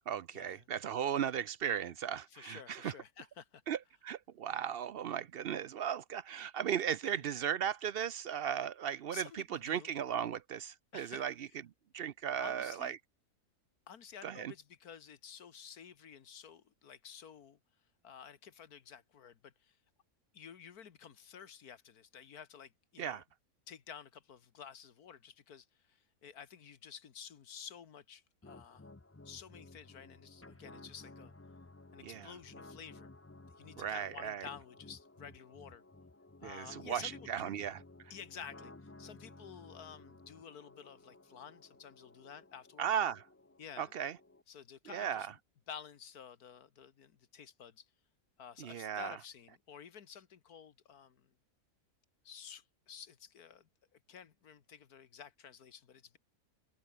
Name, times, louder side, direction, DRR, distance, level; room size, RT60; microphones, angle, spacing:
voice 1, 0.1-2.9 3.7-11.5 11.9-13.0 14.2-14.5 23.0-23.2 32.0-32.3 33.8-34.5 36.4-37.8 42.8-43.2 43.8-44.2 44.9-45.3 48.6-49.2, right 9 dB, 60° right, 0.6 m, -36 dB
voice 2, 2.3-3.6 7.2-7.3 9.1-9.9 10.9-11.2 11.5-11.6 12.4-13.0 13.9-17.6 18.0-19.8 20.3-23.2 23.7-28.9 29.3-31.3 31.9-33.1 33.6-35.8 36.4-37.6 38.1-38.7 39.0-42.9 43.6-43.9 44.5-45.4 45.7-47.9 48.4-51.3 52.2-56.2, left 8 dB, 85° left, 1.9 m, -52 dB
sound 1, 28.4-44.4, left 2 dB, 15° left, 0.5 m, -56 dB
open air
omnidirectional pair, 1.6 m